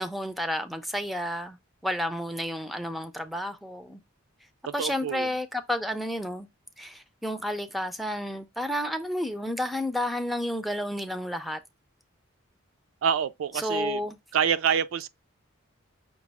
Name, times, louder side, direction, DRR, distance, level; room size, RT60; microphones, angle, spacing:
voice 1, 0.0-1.6 1.8-4.0 4.7-6.5 6.8-11.6 13.6-14.2, equal, ahead, 0.4 m, -31 dB
voice 2, 4.7-5.3 13.0-14.0 14.3-15.1, right 7 dB, 70° right, 0.3 m, -27 dB
6.0 x 2.3 x 3.4 m
head